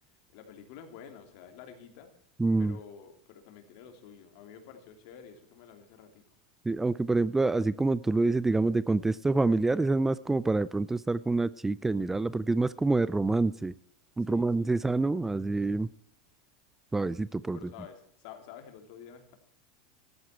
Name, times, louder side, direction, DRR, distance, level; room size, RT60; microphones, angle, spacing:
voice 1, 0.3-2.1 2.6-6.2 14.2-15.2 17.5-19.3, left 7 dB, 60° left, 6 dB, 3.1 m, -50 dB
voice 2, 2.4-2.8 6.7-13.7 14.2-15.9 16.9-17.6, right 3 dB, 10° right, 18 dB, 0.4 m, -27 dB
14.0 x 13.5 x 4.5 m, 0.63 s
hypercardioid pair, 115°, 4 cm